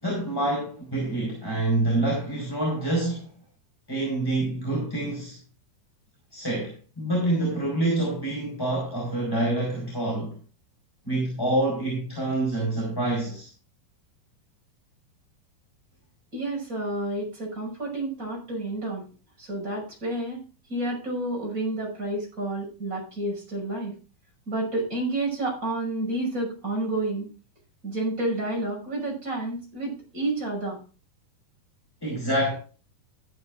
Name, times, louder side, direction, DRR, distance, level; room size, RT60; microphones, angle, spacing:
voice 1, 0.0-3.3 3.9-5.4 6.3-10.4 11.0-13.5 32.0-32.5, right 1 dB, 5° left, 4.4 m, -27 dB
voice 2, 16.3-19.1 19.4-23.9 24.5-27.3 27.8-30.8, right 2 dB, 20° right, 6.5 m, -30 dB
14.5 x 12.5 x 2.6 m
omnidirectional pair, 4.5 m